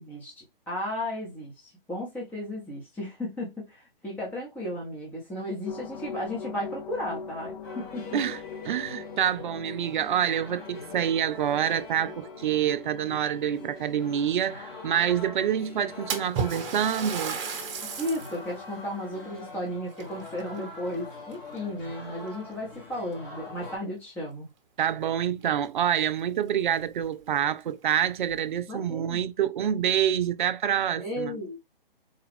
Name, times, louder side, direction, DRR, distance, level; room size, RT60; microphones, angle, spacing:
voice 1, 0.0-8.2 17.8-24.5 28.7-29.2 31.0-31.6, left 1 dB, 5° left, 0.9 m, -34 dB
sound 1, 5.6-19.5, left 5 dB, 45° left, 0.5 m, -44 dB
sound 2, 7.6-23.8, left 3 dB, 25° left, 1.1 m, -44 dB
voice 2, 8.7-17.4 24.8-31.4, right 9 dB, 55° right, 0.4 m, -27 dB
Splash splatter, 16.1-18.4 18.9-19.0 19.9-20.9 21.3-21.8 22.6-22.7 23.1-23.2 25.4-25.5 25.8-25.9 26.5-26.6 27.0-27.1 27.8-28.4, right 6 dB, 30° right, 0.9 m, -34 dB
3.9 x 2.2 x 3.5 m
figure-of-eight pair, 130°, 29 cm